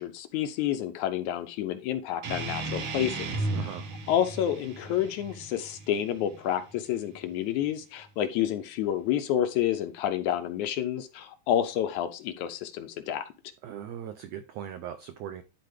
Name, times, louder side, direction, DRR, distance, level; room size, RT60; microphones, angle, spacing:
voice 1, 0.0-3.3 3.6-3.8 4.1-13.3, left 11 dB, 80° left, 1.8 m, -29 dB
sound 1, 2.2-7.3, right 2 dB, 65° right, 1.4 m, -35 dB
voice 2, 3.5-3.8 13.6-15.4, right 9 dB, 80° right, 1.5 m, -39 dB
11.5 x 4.2 x 3.3 m
omnidirectional pair, 3.7 m